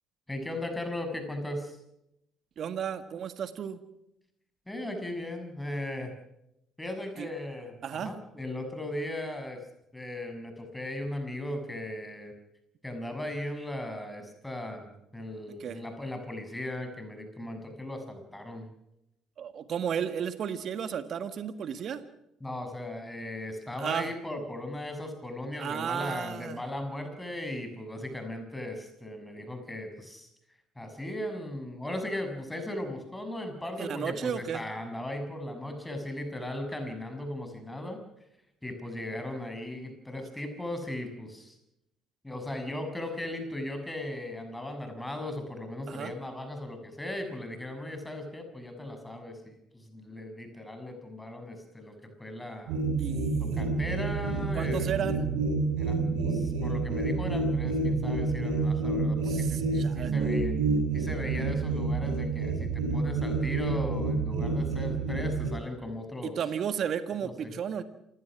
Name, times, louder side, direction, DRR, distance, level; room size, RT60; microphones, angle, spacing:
voice 1, 0.3-1.8 4.7-6.1 6.8-9.6 9.9-12.3 12.8-18.7 22.4-30.3 30.8-38.0 38.6-41.6 42.2-52.8 53.4-54.9 55.8-60.5 60.9-66.4 67.2-67.5, left 1 dB, 10° left, 6 dB, 6.4 m, -37 dB
voice 2, 2.6-3.8 7.2-7.3 7.8-8.1 15.5-15.8 19.4-22.0 23.8-24.1 25.6-26.6 33.8-34.6 45.9-46.1 53.0-53.5 54.5-55.2 59.2-60.1 66.2-67.8, right 8 dB, 50° right, 11 dB, 1.6 m, -33 dB
sound 1, 52.7-65.5, right 3 dB, 70° right, 5.1 m, -28 dB
27.5 x 16.5 x 6.0 m, 0.82 s
hypercardioid pair, 55°, 0 cm